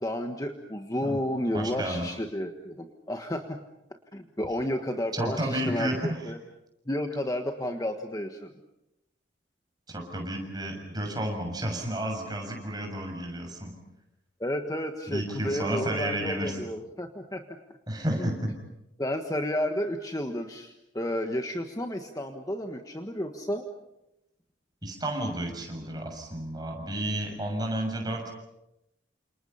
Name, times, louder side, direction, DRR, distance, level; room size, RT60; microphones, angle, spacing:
voice 1, 0.0-3.6 4.1-6.4 6.9-8.5 14.4-17.6 18.2-18.3 19.0-23.6, left 1 dB, 20° left, 5 dB, 1.4 m, -32 dB
voice 2, 1.5-2.1 5.1-6.3 9.9-13.7 15.1-16.6 17.9-18.5 24.8-28.3, right 1 dB, 20° right, 2 dB, 6.9 m, -31 dB
29.5 x 28.0 x 5.7 m, 0.89 s
head